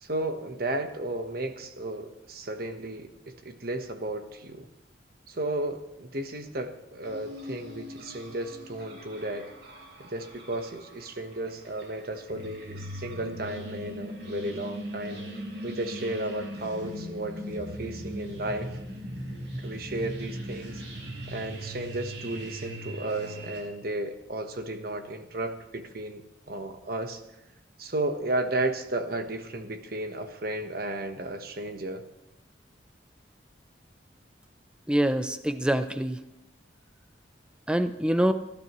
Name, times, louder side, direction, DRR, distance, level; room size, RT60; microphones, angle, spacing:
voice 1, 0.0-4.7 5.3-9.5 10.0-18.7 19.6-20.8 21.3-27.2 27.8-32.0, right 1 dB, 55° right, 7 dB, 1.2 m, -34 dB
sound 1, 7.0-23.6, equal, 70° right, 4.6 m, -40 dB
voice 2, 34.9-36.2 37.7-38.3, right 1 dB, 5° right, 9 dB, 0.6 m, -25 dB
29.0 x 12.0 x 3.1 m, 0.90 s
head